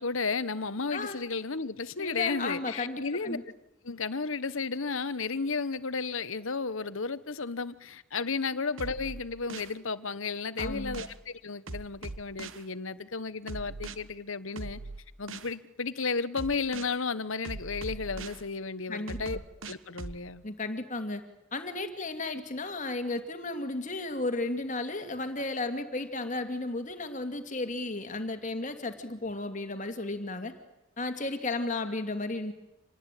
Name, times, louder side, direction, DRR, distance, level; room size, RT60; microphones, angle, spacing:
voice 1, 0.0-3.4 3.8-14.8 15.2-19.4 19.7-20.4, left 4 dB, 70° left, 1.1 m, -33 dB
voice 2, 0.9-1.2 2.0-3.4 10.6-11.0 18.9-19.4 20.4-21.2 21.5-30.5 31.0-32.5, left 2 dB, 35° left, 2.4 m, -34 dB
sound 1, 8.8-9.7 10.6-11.1 11.7-12.6 13.5-14.0 14.6-15.5 16.4-16.9 17.4-18.4 19.1-20.2, right 3 dB, 65° right, 1.3 m, -40 dB
27.0 x 19.5 x 9.1 m
head